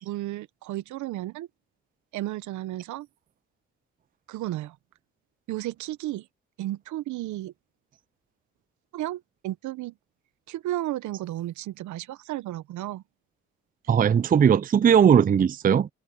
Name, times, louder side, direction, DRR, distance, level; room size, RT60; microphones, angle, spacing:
voice 1, 0.0-1.5 2.1-3.1 4.3-4.8 5.5-6.3 6.6-7.5 8.9-9.9 10.5-13.0, right 15 dB, 80° right, 1.2 m, -33 dB
voice 2, 13.9-15.9, right 8 dB, 30° right, 0.5 m, -19 dB
supercardioid pair, 55°, 29 cm